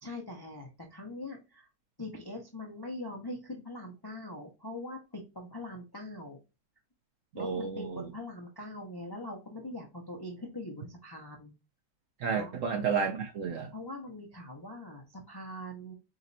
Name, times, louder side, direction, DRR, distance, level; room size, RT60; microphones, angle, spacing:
voice 1, 0.0-1.7 2.0-6.4 7.3-11.5 12.3-12.5 13.7-15.9, left 1 dB, 25° left, 0.5 m, -42 dB
voice 2, 7.4-8.0 12.2-13.7, right 6 dB, 60° right, 0.8 m, -31 dB
5.0 x 3.1 x 2.7 m
omnidirectional pair, 1.8 m